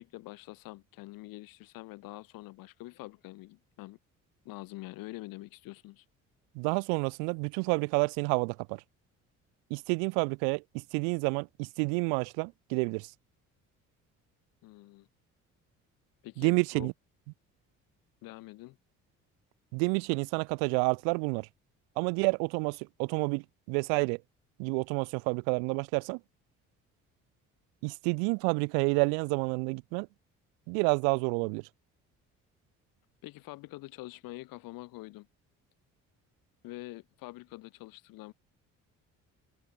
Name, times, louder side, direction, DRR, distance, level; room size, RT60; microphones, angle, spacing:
voice 1, 0.0-4.0 4.4-6.0 14.6-15.1 16.2-16.9 18.2-18.8 33.2-35.3 36.6-38.3, left 20 dB, 80° left, 2.5 m, -45 dB
voice 2, 6.5-8.8 9.7-13.1 16.4-16.9 19.7-21.5 22.0-24.2 24.6-26.2 27.8-30.1 30.7-31.7, right 40 dB or more, 90° right, 0.5 m, -29 dB
supercardioid pair, 65°, 34 cm